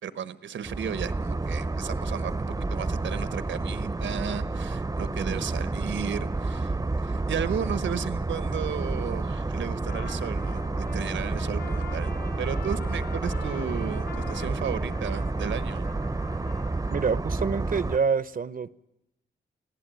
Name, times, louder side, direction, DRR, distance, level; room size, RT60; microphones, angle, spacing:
voice 1, 0.0-12.1 12.4-15.9, right 8 dB, 85° right, 1.2 m, -34 dB
sound 1, 0.6-18.0, right 3 dB, 20° right, 0.7 m, -30 dB
Trumpet, 9.9-17.1, left 5 dB, 55° left, 1.4 m, -44 dB
voice 2, 16.9-18.7, right 5 dB, 50° right, 0.7 m, -26 dB
24.0 x 15.5 x 9.2 m
cardioid pair, 75°, 19 cm